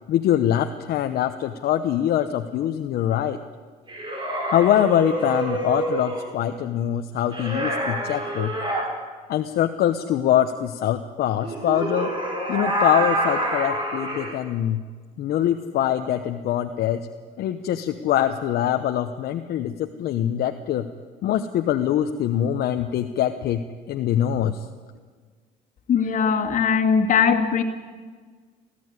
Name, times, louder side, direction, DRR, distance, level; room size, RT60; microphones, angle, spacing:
voice 1, 0.1-3.4 4.5-8.5 9.3-12.1 12.5-14.8 15.2-17.1 17.4-20.9 21.2-24.6, left 11 dB, 70° left, 6 dB, 1.0 m, -23 dB
sound 1, 3.9-6.3 7.3-8.9 11.4-14.3, right 1 dB, 30° right, 5.3 m, -27 dB
voice 2, 25.9-27.6, left 6 dB, 50° left, 3 dB, 2.2 m, -20 dB
19.0 x 14.5 x 9.7 m, 1.5 s
cardioid pair, 110°, 17 cm